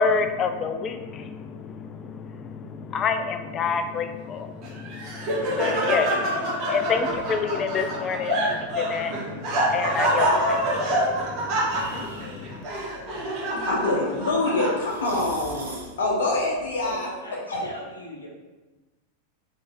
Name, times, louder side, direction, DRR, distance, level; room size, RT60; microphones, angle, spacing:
voice 1, 0.0-12.6, left 5 dB, 30° left, 8 dB, 0.3 m, -29 dB
Laughter, 4.6-15.1, right 1 dB, 40° right, 1.2 m, -26 dB
sound 1, 10.2-16.9, right 2 dB, 75° right, 0.9 m, -44 dB
voice 2, 13.6-17.1 17.5-17.6, left 2 dB, 60° left, -2 dB, 1.0 m, -25 dB
voice 3, 16.8-18.3, equal, 85° left, -4 dB, 1.0 m, -38 dB
3.8 x 3.3 x 3.6 m, 1.2 s
figure-of-eight pair, 90°, 0 cm